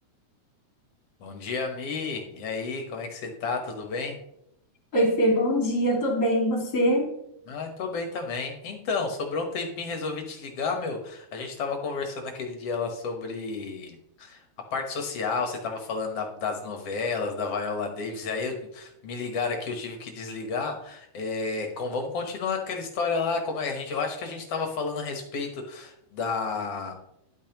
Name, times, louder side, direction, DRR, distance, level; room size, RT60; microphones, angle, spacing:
voice 1, 1.2-4.2 7.5-14.4 14.7-26.9, left 4 dB, 60° left, 4 dB, 2.0 m, -31 dB
voice 2, 4.9-7.1, equal, 35° left, 0 dB, 2.5 m, -23 dB
11.0 x 8.7 x 3.0 m, 0.76 s
omnidirectional pair, 3.4 m